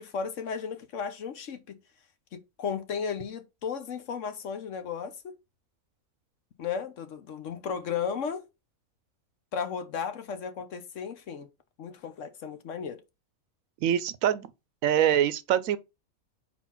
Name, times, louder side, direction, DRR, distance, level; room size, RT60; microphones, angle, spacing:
voice 1, 0.0-1.8 2.3-5.4 6.6-8.4 9.5-11.5 11.8-13.0, left 6 dB, 60° left, 1.1 m, -34 dB
voice 2, 13.8-14.5 14.8-15.8, right 10 dB, 75° right, 1.0 m, -24 dB
4.5 x 4.3 x 5.6 m
omnidirectional pair, 1.5 m